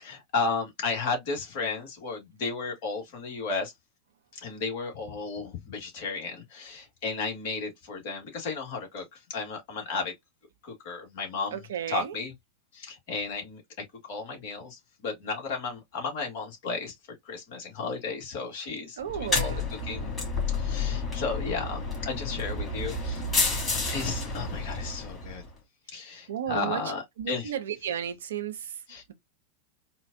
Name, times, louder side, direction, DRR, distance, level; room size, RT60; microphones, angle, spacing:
voice 1, 0.0-3.7 4.3-10.1 10.6-11.6 11.9-12.3 12.7-13.6 14.1-16.9 17.3-20.1 20.5-23.2 23.9-25.4 25.9-27.5 28.9-29.0, left 4 dB, 50° left, 1.9 m, -34 dB
voice 2, 11.5-12.2 19.0-19.7 26.3-26.8 27.2-28.7, right 9 dB, 60° right, 0.7 m, -33 dB
sound 1, 19.1-25.5, left 3 dB, 20° left, 2.4 m, -30 dB
4.3 x 2.5 x 2.6 m
figure-of-eight pair, 90°, 0 cm